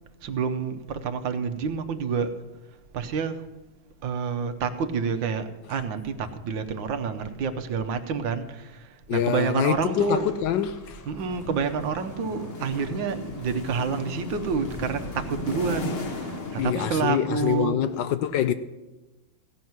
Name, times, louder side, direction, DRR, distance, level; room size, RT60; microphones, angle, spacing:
voice 1, 0.2-2.4 2.9-3.4 4.0-10.3 11.1-17.8, right 5 dB, 70° right, 1.5 m, -28 dB
voice 2, 9.1-11.0 16.6-18.5, left 10 dB, 75° left, 1.2 m, -25 dB
sound 1, 9.9-17.6, right 1 dB, 15° left, 0.6 m, -44 dB
sound 2, 11.1-17.6, left 3 dB, 45° left, 0.8 m, -36 dB
16.5 x 5.9 x 9.3 m
omnidirectional pair, 2.2 m